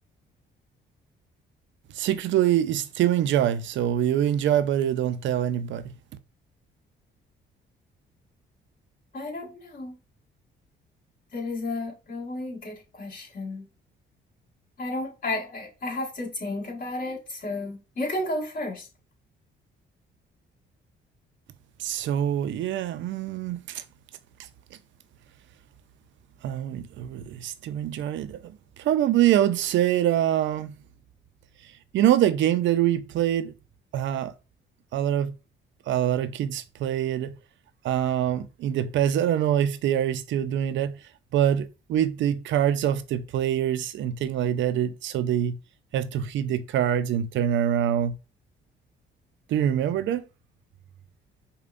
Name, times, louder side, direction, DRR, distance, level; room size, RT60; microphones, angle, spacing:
voice 1, 1.9-5.9 21.8-23.8 26.4-30.7 31.9-33.5 33.9-34.3 34.9-35.4 35.9-37.3 37.8-41.0 41.3-45.6 45.9-48.2 49.5-50.2, right 11 dB, 70° right, 0.4 m, -24 dB
voice 2, 9.1-9.9 11.3-13.7 14.8-18.9, left 2 dB, 45° left, 1.6 m, -32 dB
5.1 x 2.2 x 2.4 m
cardioid pair, 90°, 20 cm